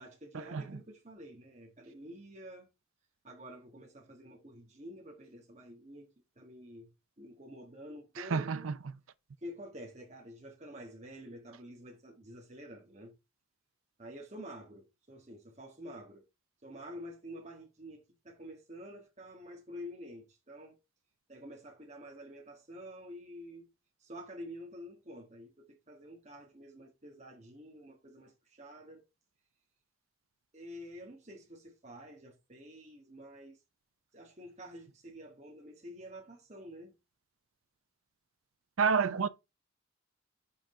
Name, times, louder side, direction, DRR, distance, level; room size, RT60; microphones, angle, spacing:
voice 1, 0.0-2.7 3.2-6.9 7.2-8.7 9.4-13.1 14.0-16.2 16.6-20.8 21.3-23.7 24.0-29.1 30.5-33.6 34.1-36.9, equal, 35° right, 1.5 m, -49 dB
voice 2, 8.2-8.7 38.8-39.3, right 5 dB, 85° right, 0.5 m, -28 dB
5.8 x 5.0 x 4.2 m
head